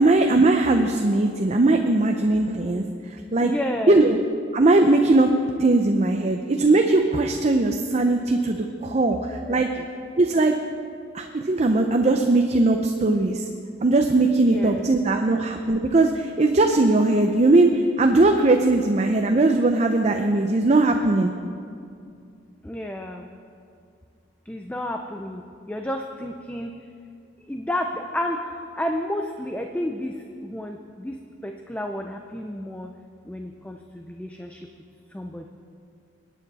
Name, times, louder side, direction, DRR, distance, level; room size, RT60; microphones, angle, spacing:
voice 1, 0.0-3.5 3.9-4.2 4.5-5.3 5.6-9.7 10.2-10.5 11.1-13.5 13.8-21.3, right 2 dB, 40° right, 4 dB, 0.6 m, -19 dB
voice 2, 3.4-4.1 9.0-9.1 9.5-9.8 14.4-14.9 22.6-23.3 24.5-25.4 25.7-26.7 27.5-28.5 28.8-30.2 30.4-32.9 33.3-34.6 35.1-35.5, left 1 dB, 10° left, 3 dB, 0.5 m, -31 dB
21.5 x 9.3 x 4.1 m, 2.3 s
head